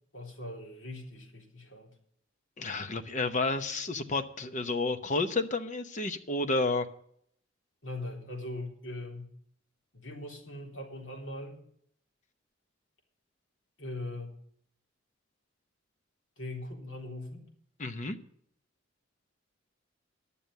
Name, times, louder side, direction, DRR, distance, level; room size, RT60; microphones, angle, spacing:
voice 1, 0.1-1.9 7.8-9.3 9.9-11.6 13.8-14.3 16.4-17.5, left 1 dB, 65° left, 0 dB, 3.5 m, -40 dB
voice 2, 2.6-6.9 17.8-18.2, left 3 dB, 40° left, 8 dB, 0.9 m, -31 dB
11.0 x 7.0 x 9.2 m, 0.67 s
head